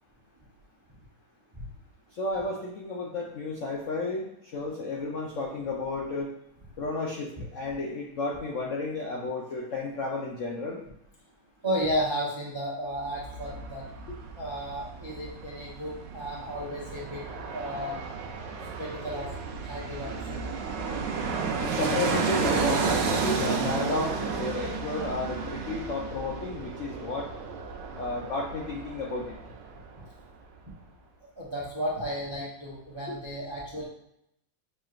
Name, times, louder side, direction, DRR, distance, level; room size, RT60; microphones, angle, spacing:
voice 1, 2.2-6.3 6.8-10.8 21.6-27.3 28.0-29.4 33.1-33.2, left 3 dB, 85° left, -2 dB, 0.6 m, -32 dB
voice 2, 11.6-13.8 14.4-17.2 17.5-18.0 18.8-19.3 19.6-20.5 31.4-33.8, equal, 45° right, -6 dB, 0.3 m, -33 dB
Fixed-wing aircraft airplane, 12.9-29.9 30.2-30.3, right 5 dB, 70° right, 1.2 m, -32 dB
7.0 x 3.0 x 2.5 m, 0.77 s
omnidirectional pair, 2.1 m